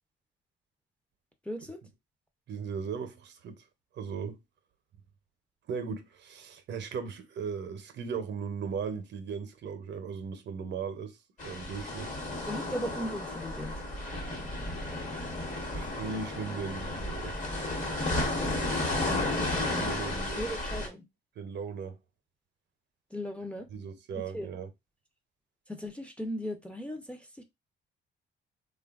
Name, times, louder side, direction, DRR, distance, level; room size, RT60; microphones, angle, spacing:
voice 1, 1.5-1.8 12.2-13.8 20.4-21.0 23.1-23.7 24.3-24.5 25.7-27.4, equal, 5° left, 0.5 m, -37 dB
voice 2, 2.5-3.6 3.9-4.4 5.7-11.2 11.4-12.2 15.7-17.3 19.6-20.6 21.4-22.0 23.7-24.7, right 6 dB, 65° right, 0.6 m, -37 dB
sound 1, 11.4-20.9, left 2 dB, 40° left, 1.1 m, -33 dB
3.2 x 2.2 x 2.3 m
cardioid pair, 90°, 20 cm